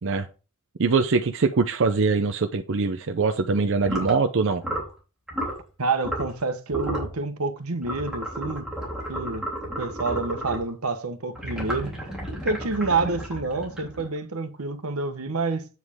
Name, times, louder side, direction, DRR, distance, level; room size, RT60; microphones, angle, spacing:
voice 1, 0.8-4.6, right 4 dB, 60° right, 0.6 m, -23 dB
sound 1, 3.8-4.2 4.6-4.9 5.3-5.6 6.0-6.4 6.7-7.1 7.8-10.7 11.3-14.2, right 1 dB, 5° right, 3.4 m, -32 dB
voice 2, 5.8-8.7 9.1-9.5 9.8-11.9 12.4-15.7, right 3 dB, 90° right, 1.1 m, -28 dB
8.2 x 7.3 x 3.6 m
head